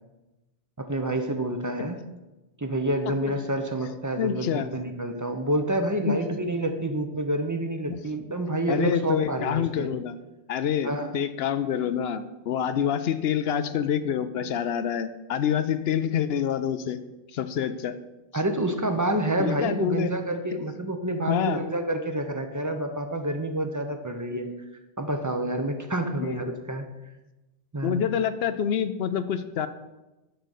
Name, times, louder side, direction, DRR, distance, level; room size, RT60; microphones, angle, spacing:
voice 1, 0.8-2.0 2.6-9.9 10.8-11.1 18.3-24.5 25.0-26.9 27.7-28.0, right 1 dB, 20° right, 6 dB, 0.6 m, -28 dB
voice 2, 4.2-4.7 6.1-6.2 7.9-8.0 8.7-10.1 10.5-17.0 17.3-18.0 19.4-20.1 21.3-21.6 24.3-24.6 26.2-26.5 27.8-29.7, left 8 dB, 75° left, 12 dB, 0.8 m, -27 dB
10.5 x 4.0 x 6.5 m, 1.0 s
omnidirectional pair, 1.1 m